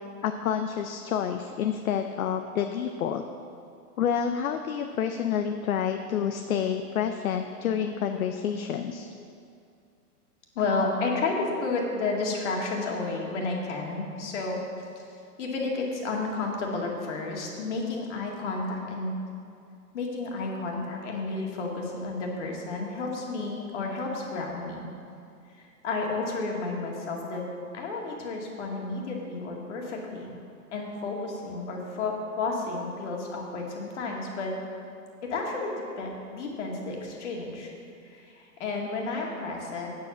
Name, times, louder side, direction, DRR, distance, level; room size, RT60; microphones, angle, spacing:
voice 1, 0.2-3.2 4.0-9.1, left 8 dB, 60° left, 6 dB, 0.7 m, -28 dB
voice 2, 10.6-14.6 15.0-15.1 15.4-19.1 19.9-24.9 25.6-27.4 27.7-30.4 30.7-34.5 35.2-37.7 38.0-39.9, left 3 dB, 45° left, -1 dB, 2.1 m, -31 dB
8.4 x 7.6 x 7.3 m, 2.4 s
hypercardioid pair, 170°, 47 cm